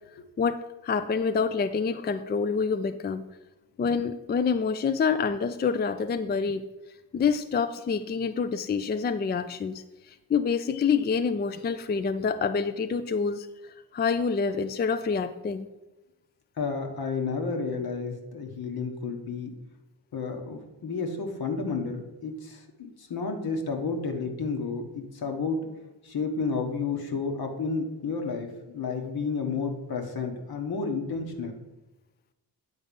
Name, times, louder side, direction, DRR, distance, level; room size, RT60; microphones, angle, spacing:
voice 1, 0.4-3.3 3.8-6.7 7.1-15.7, left 5 dB, 25° left, 10 dB, 0.4 m, -27 dB
voice 2, 16.6-19.5 20.1-25.6 26.0-31.6, left 4 dB, 65° left, 4 dB, 1.3 m, -31 dB
8.6 x 3.9 x 5.3 m, 1.0 s
cardioid pair, 65°, 40 cm